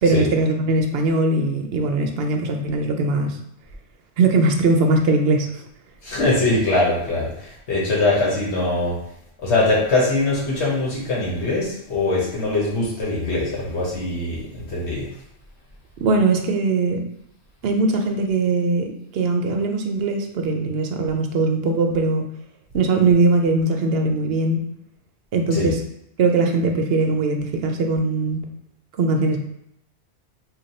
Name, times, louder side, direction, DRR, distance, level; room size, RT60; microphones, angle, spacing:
voice 1, 0.0-3.4 4.2-5.5 16.0-17.0 17.6-22.2 22.7-24.6 25.3-25.8 26.2-28.4 29.0-29.4, right 3 dB, 65° right, 4 dB, 0.8 m, -20 dB
voice 2, 6.0-9.0 9.4-15.1 25.5-25.7, left 2 dB, 75° left, -6 dB, 1.3 m, -22 dB
3.3 x 2.3 x 4.1 m, 0.78 s
omnidirectional pair, 1.1 m